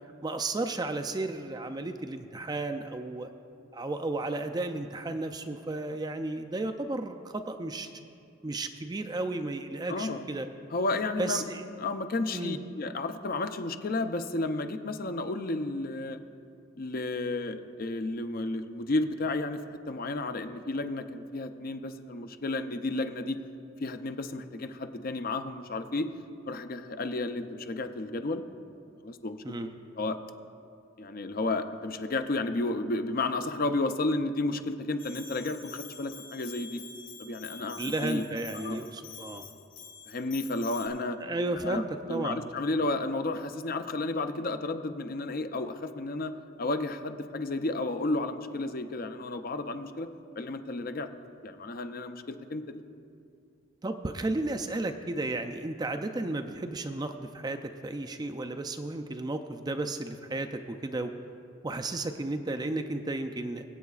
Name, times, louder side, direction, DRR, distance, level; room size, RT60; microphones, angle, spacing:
voice 1, 0.2-3.3 3.7-7.9 8.4-10.5 11.2-11.6 12.3-12.6 29.4-29.8 37.8-39.5 41.2-41.8 42.1-42.5 53.8-61.1 61.6-63.6, right 2 dB, 20° right, 7 dB, 0.4 m, -33 dB
voice 2, 9.9-10.2 10.7-11.4 11.8-16.2 16.8-19.6 19.9-23.4 23.8-26.1 26.5-28.5 29.0-29.4 30.0-30.2 31.0-36.8 37.2-38.2 38.5-38.8 40.1-41.2 41.6-41.8 42.1-46.3 46.6-50.1 50.4-51.1 51.4-52.8, left 2 dB, 45° left, 8 dB, 0.5 m, -32 dB
Bell, 35.0-40.9, left 6 dB, 90° left, 1.5 m, -46 dB
24.5 x 8.2 x 2.4 m, 2.4 s
head